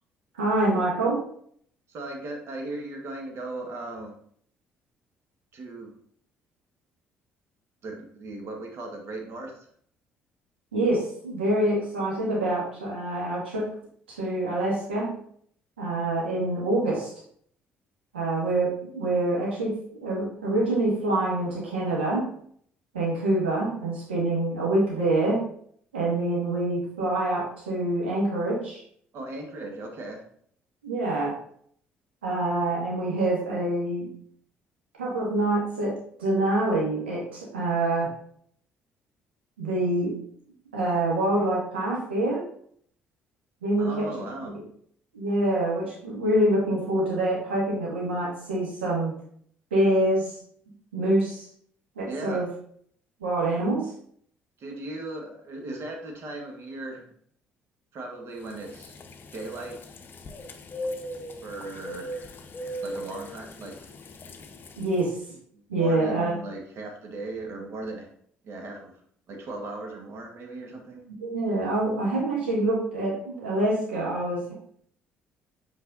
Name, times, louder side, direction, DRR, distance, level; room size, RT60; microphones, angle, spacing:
voice 1, 0.3-1.2 10.7-13.7 14.1-15.1 15.8-17.1 18.1-22.3 22.9-25.4 25.9-28.8 30.8-31.3 32.2-34.1 35.0-38.1 39.6-40.2 40.7-42.4 43.6-44.1 44.4-44.5 45.1-49.1 49.7-50.4 50.9-51.5 52.0-52.5 53.2-53.9 64.8-65.2 65.7-66.3 71.1-74.5, right 1 dB, 75° right, -5 dB, 1.9 m, -26 dB
voice 2, 1.9-4.1 5.5-5.9 7.8-9.7 29.1-30.2 43.8-44.5 52.1-52.4 54.6-57.1 57.9-58.9 59.3-59.8 61.4-62.2 62.8-63.9 65.7-68.1 68.4-68.9 69.3-71.0, right 2 dB, 50° right, 2 dB, 1.5 m, -37 dB
sound 1, 58.5-65.1, equal, 35° left, 0.7 m, -39 dB
7.9 x 4.7 x 2.7 m, 0.62 s
figure-of-eight pair, 45°, 6 cm